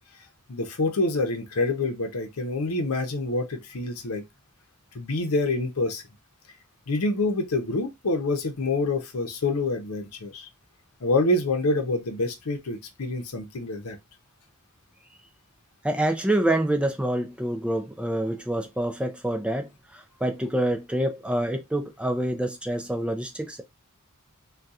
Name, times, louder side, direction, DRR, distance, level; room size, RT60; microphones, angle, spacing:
voice 1, 0.5-4.3 4.9-6.0 6.9-10.5 11.0-14.0, left 2 dB, 75° left, 0.7 m, -26 dB
voice 2, 15.8-23.6, right 1 dB, 5° right, 0.4 m, -27 dB
2.7 x 2.3 x 3.5 m
head